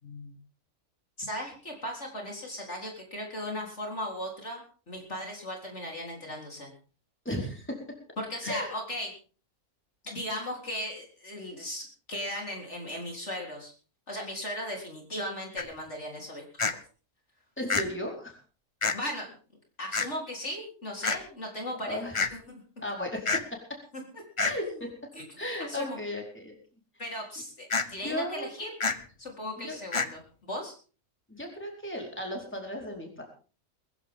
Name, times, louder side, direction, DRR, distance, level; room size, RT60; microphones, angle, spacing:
voice 1, 0.0-0.4 1.2-6.7 8.2-9.1 10.0-13.7 14.1-16.5 18.9-19.4 19.8-22.0 22.3-22.6 23.9-24.0 24.6-24.8 25.1-25.2 25.7-26.0 27.0-28.7 29.2-30.2 30.5-30.7, left 1 dB, 50° left, 1 dB, 4.2 m, -37 dB
voice 2, 7.2-7.8 8.4-8.7 17.6-18.4 21.0-21.1 21.9-22.2 22.8-23.4 24.4-24.6 25.4-26.5 28.0-28.7 29.6-29.8 31.3-33.2, left 1 dB, 5° left, 0 dB, 4.6 m, -35 dB
sound 1, 15.6-15.7 16.6-16.7 17.7-17.8 18.8-18.9 19.9-20.1 21.0-21.2 22.1-22.3 23.2-23.4 24.4-24.5 27.7-27.8 28.8-29.0 29.9-30.1, left 4 dB, 25° left, 0.8 m, -27 dB
21.5 x 15.0 x 3.7 m, 0.38 s
omnidirectional pair, 1.5 m